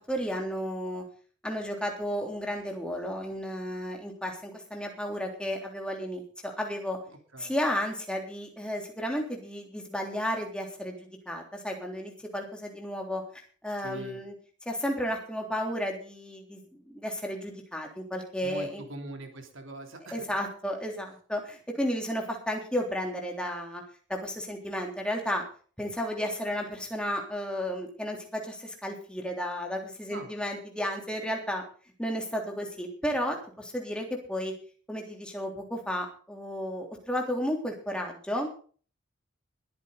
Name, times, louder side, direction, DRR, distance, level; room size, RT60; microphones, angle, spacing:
voice 1, 0.1-1.0 1.4-7.0 7.4-14.3 14.6-18.8 20.1-23.8 24.1-25.4 25.8-31.6 32.0-34.5 34.9-38.5, equal, 5° left, 1 dB, 3.3 m, -33 dB
voice 2, 13.8-14.2 18.4-20.3 30.1-30.3, right 1 dB, 70° right, 4 dB, 3.3 m, -42 dB
21.5 x 9.2 x 4.0 m, 0.41 s
head